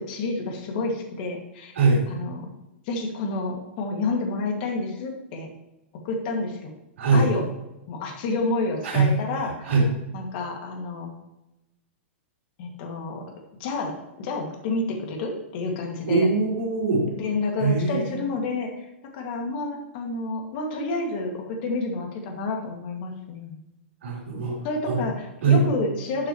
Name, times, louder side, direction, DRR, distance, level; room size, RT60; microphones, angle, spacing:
voice 1, 0.0-1.7 2.1-2.5 2.9-5.5 6.0-6.7 7.1-7.5 7.9-9.7 10.1-11.1 12.6-13.2 13.6-16.3 17.1-18.7 19.1-23.6 24.6-26.3, left 3 dB, 45° left, 1 dB, 2.2 m, -29 dB
voice 2, 7.0-7.3 8.8-9.1 9.7-9.9 16.1-17.1 17.6-18.2 24.0-24.6 24.9-25.1 25.4-25.6, right 4 dB, 75° right, -3 dB, 3.5 m, -21 dB
12.0 x 6.6 x 3.1 m, 0.93 s
hypercardioid pair, 155°, 7 cm